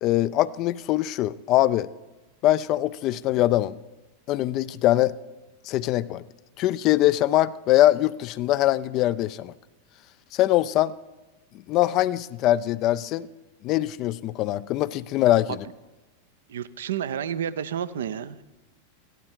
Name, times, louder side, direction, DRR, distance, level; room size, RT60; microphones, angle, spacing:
voice 1, 0.0-1.9 2.4-3.8 4.3-5.1 5.7-6.2 6.6-9.5 10.3-10.9 11.7-13.3 13.6-15.6, left 14 dB, 40° left, 0.3 m, -22 dB
voice 2, 16.5-18.4, right 9 dB, 70° right, 0.5 m, -30 dB
14.5 x 12.0 x 4.4 m
figure-of-eight pair, 90°, 0 cm